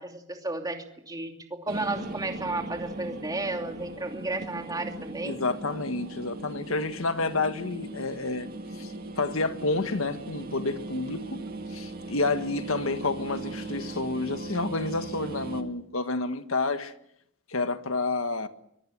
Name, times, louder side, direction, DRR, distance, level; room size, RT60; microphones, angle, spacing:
voice 1, 0.0-5.3, right 2 dB, 20° right, 2.8 m, -33 dB
sound 1, 1.7-15.6, right 2 dB, 45° right, 2.3 m, -39 dB
voice 2, 5.2-8.5 8.8-11.4 11.7-16.9 17.5-18.5, left 3 dB, 75° left, 1.6 m, -29 dB
24.5 x 23.0 x 7.5 m
head